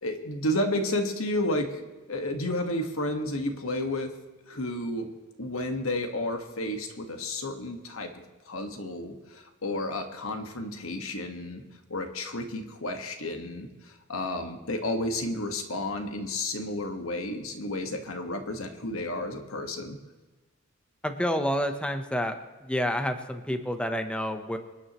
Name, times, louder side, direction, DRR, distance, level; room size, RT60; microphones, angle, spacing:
voice 1, 0.0-4.1 4.5-5.1 5.4-11.6 11.9-20.0, left 1 dB, 85° left, 5 dB, 1.7 m, -32 dB
voice 2, 21.0-22.3 22.6-24.6, equal, 5° left, 6 dB, 0.9 m, -29 dB
27.0 x 9.9 x 3.1 m, 1.3 s
head